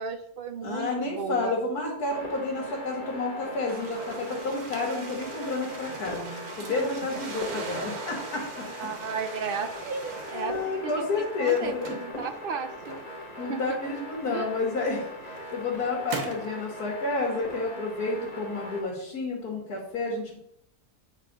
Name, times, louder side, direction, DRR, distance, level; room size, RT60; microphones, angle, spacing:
voice 1, 0.0-1.5 6.6-6.8 7.5-7.7 8.8-13.0 13.5-13.6 14.3-14.5, right 6 dB, 65° right, 7 dB, 0.5 m, -35 dB
voice 2, 0.6-8.7 10.3-12.0 13.4-20.4, left 3 dB, 90° left, -4 dB, 2.2 m, -30 dB
sound 1, 2.1-18.8, equal, 25° left, 1.6 m, -41 dB
sound 2, 3.7-10.9 11.3-13.3 14.2-14.3 15.0-16.5, right 4 dB, 80° right, 1.7 m, -41 dB
8.3 x 4.2 x 5.2 m, 0.74 s
omnidirectional pair, 1.6 m